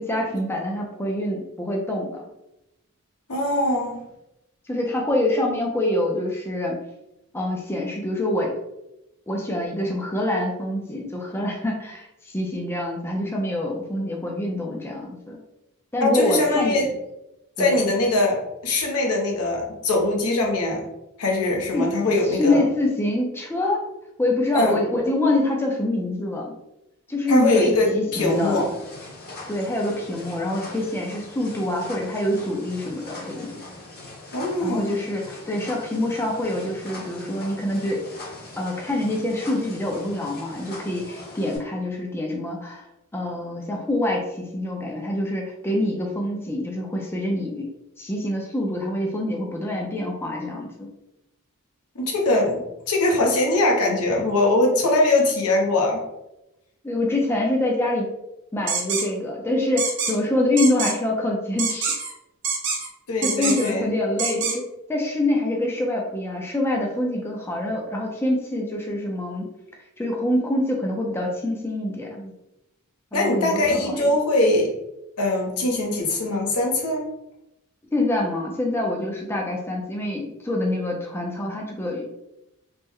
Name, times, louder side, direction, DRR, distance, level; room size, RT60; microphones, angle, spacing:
voice 1, 0.0-2.3 4.7-6.8 7.3-8.5 9.3-15.4 15.9-16.9 17.6-17.8 21.7-21.9 22.2-23.8 24.2-26.5 27.1-28.6 29.5-33.6 34.6-38.0 38.6-42.8 43.1-47.7 48.0-50.9 56.8-58.1 58.5-62.0 63.2-69.5 70.0-72.3 73.1-74.1 77.9-82.1, left 1 dB, 10° left, -1 dB, 0.3 m, -25 dB
voice 2, 3.3-4.0 16.0-16.9 17.6-20.8 21.2-22.6 24.5-24.7 27.3-28.7 34.3-35.0 51.9-56.0 63.1-63.9 73.1-74.7 75.2-77.1, left 2 dB, 85° left, 0 dB, 0.8 m, -22 dB
sound 1, 28.2-41.6, left 2 dB, 45° left, 0.8 m, -41 dB
sound 2, 58.7-59.0 59.8-60.1 60.6-60.9 61.6-62.1 62.4-62.9 63.2-63.7 64.2-64.5, right 5 dB, 60° right, 0.8 m, -25 dB
3.1 x 2.0 x 3.5 m, 0.91 s
head